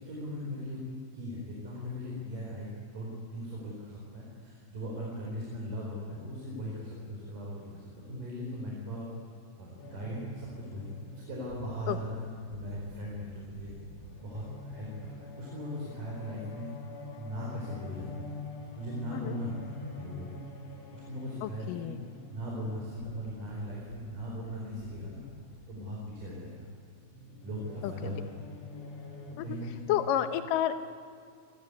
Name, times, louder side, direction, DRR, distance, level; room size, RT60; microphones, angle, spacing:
voice 1, 0.0-2.7 2.9-9.1 9.6-12.2 12.5-13.7 14.2-16.7 17.2-18.3 18.8-19.5 19.9-20.3 20.9-21.9 22.3-25.2 25.7-26.7 27.4-28.5 29.4-30.0, equal, 50° right, -3 dB, 5.9 m, -39 dB
sound 1, 9.8-29.3, left 2 dB, 40° left, 3.4 m, -46 dB
voice 2, 21.4-22.0 27.8-28.1 29.4-29.6 29.9-30.8, left 11 dB, 70° left, 9 dB, 2.1 m, -30 dB
27.5 x 20.5 x 9.7 m, 2.2 s
omnidirectional pair, 5.1 m